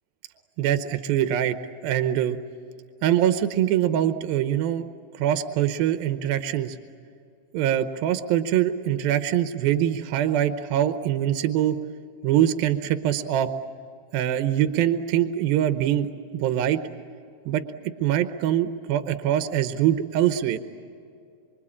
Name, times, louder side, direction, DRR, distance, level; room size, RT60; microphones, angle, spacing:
voice 1, 0.6-1.6 1.8-2.4 3.0-4.8 5.2-6.8 7.5-11.8 12.2-13.5 14.1-16.8 17.5-17.6 18.0-20.6, right 11 dB, 80° right, 9 dB, 2.7 m, -23 dB
26.0 x 25.0 x 8.6 m, 2.5 s
omnidirectional pair, 4.2 m